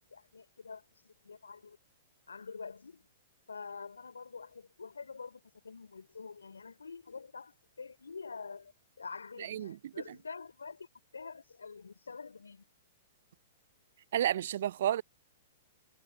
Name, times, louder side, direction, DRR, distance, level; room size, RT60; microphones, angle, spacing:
voice 1, 0.0-1.8 2.3-3.1 3.5-10.9 11.1-12.6, left 5 dB, 75° left, 3.2 m, -47 dB
voice 2, 9.4-9.8 14.1-15.0, right 11 dB, 60° right, 0.5 m, -31 dB
figure-of-eight pair, 110°, 0 cm